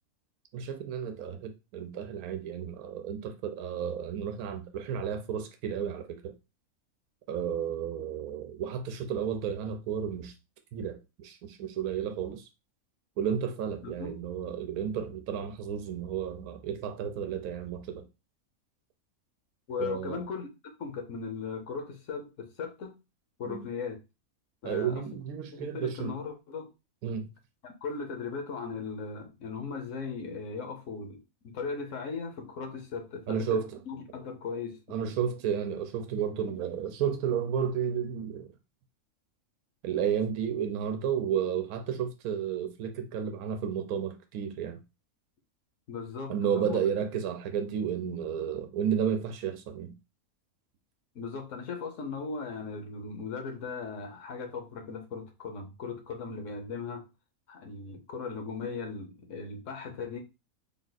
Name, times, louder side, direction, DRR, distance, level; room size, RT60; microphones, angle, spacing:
voice 1, 0.5-6.3 7.3-10.3 10.7-12.4 13.2-18.0 19.8-20.2 23.5-23.6 24.6-26.1 27.0-27.3 33.3-33.7 34.9-38.5 39.8-44.8 46.3-49.9, right 8 dB, 90° right, 1.1 m, -32 dB
voice 2, 13.8-14.2 19.7-20.5 20.8-22.9 23.4-24.0 24.6-25.1 25.5-26.7 27.6-35.2 45.9-46.8 51.1-57.1 57.5-60.2, left 5 dB, 60° left, 1.2 m, -38 dB
3.6 x 2.4 x 3.9 m
omnidirectional pair, 1.5 m